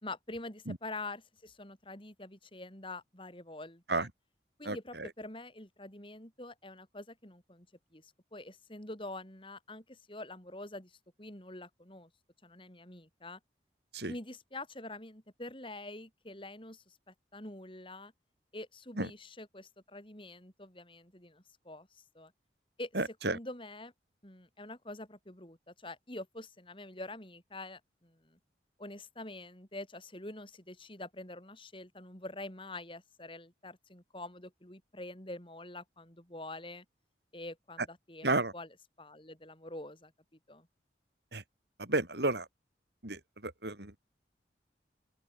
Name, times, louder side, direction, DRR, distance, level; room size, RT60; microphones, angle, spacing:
voice 1, 0.0-4.1 4.6-7.7 7.9-12.1 12.4-13.4 14.1-18.1 18.5-22.3 22.8-23.9 24.2-28.4 28.8-36.8 37.3-40.1 40.5-40.7, left 2 dB, 30° left, 4.1 m, -46 dB
voice 2, 22.9-23.4 38.2-38.5 41.3-41.4 41.8-42.5 43.0-44.0, right 2 dB, 65° right, 3.5 m, -32 dB
open air
head